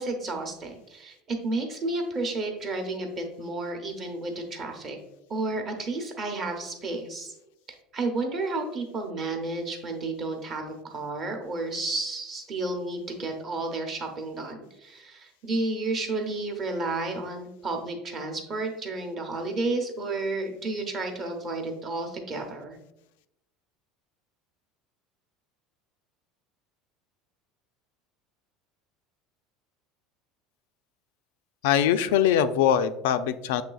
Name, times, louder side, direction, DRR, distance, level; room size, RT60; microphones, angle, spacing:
voice 1, 0.0-5.0 5.3-7.3 7.9-22.8, right 2 dB, 25° right, 3 dB, 0.8 m, -31 dB
voice 2, 31.6-33.6, left 9 dB, 85° left, 10 dB, 0.3 m, -22 dB
7.3 x 3.1 x 2.3 m, 0.84 s
cardioid pair, 170°, 0 cm